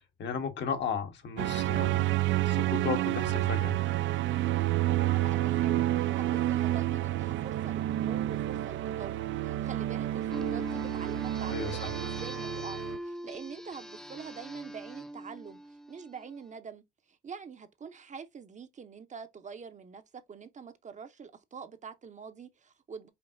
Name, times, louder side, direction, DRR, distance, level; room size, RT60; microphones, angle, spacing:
voice 1, 0.2-2.0 2.4-3.8 11.5-11.8, left 6 dB, 65° left, 1.2 m, -34 dB
sound 1, 1.4-13.0, right 14 dB, 75° right, 0.4 m, -29 dB
voice 2, 4.9-15.6 15.9-16.8 17.1-23.1, right 6 dB, 40° right, 0.7 m, -45 dB
sound 2, 10.3-16.3, right 1 dB, 5° left, 0.5 m, -41 dB
5.2 x 2.7 x 2.6 m
cardioid pair, 90°, 20 cm